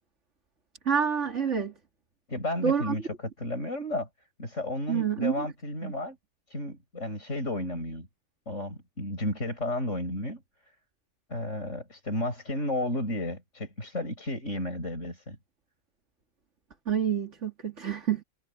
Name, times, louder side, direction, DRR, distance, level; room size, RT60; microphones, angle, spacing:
voice 1, 0.9-1.7 2.6-2.9 4.9-5.5 5.8-5.9 16.9-18.2, right 7 dB, 75° right, 2.9 m, -27 dB
voice 2, 2.3-4.1 4.4-6.2 6.5-8.1 8.5-10.4 11.3-15.4, left 1 dB, 85° left, 7.3 m, -32 dB
omnidirectional pair, 1.2 m